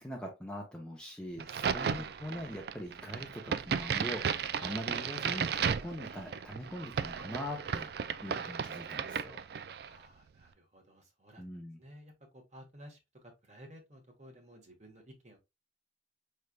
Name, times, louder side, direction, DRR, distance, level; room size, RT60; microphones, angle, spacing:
voice 1, 0.0-7.9 8.2-9.4 11.4-11.8, equal, 5° left, 0.7 m, -42 dB
Crack, 1.4-10.0, right 7 dB, 55° right, 0.3 m, -35 dB
voice 2, 1.8-2.1 9.9-11.4 11.8-15.4, equal, 40° right, 1.3 m, -54 dB
5.5 x 3.3 x 2.3 m
head